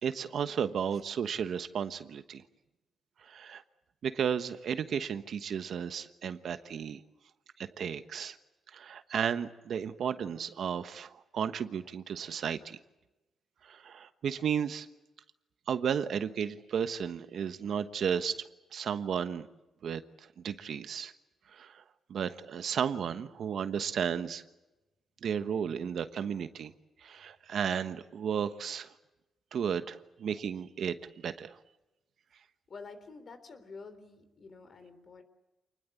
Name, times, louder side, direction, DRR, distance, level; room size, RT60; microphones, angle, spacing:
voice 1, 0.0-2.4 3.2-3.6 4.0-7.0 7.6-8.4 8.7-12.8 13.6-14.9 15.7-18.3 18.7-19.5 19.8-20.0 20.4-21.1 21.5-21.8 22.1-24.4 25.2-26.7 27.0-28.9 29.5-31.6, right 7 dB, 60° right, 10 dB, 1.2 m, -33 dB
voice 2, 32.7-35.2, left 4 dB, 45° left, 10 dB, 3.5 m, -48 dB
28.0 x 20.5 x 8.4 m, 1.0 s
cardioid pair, 120°, 0 cm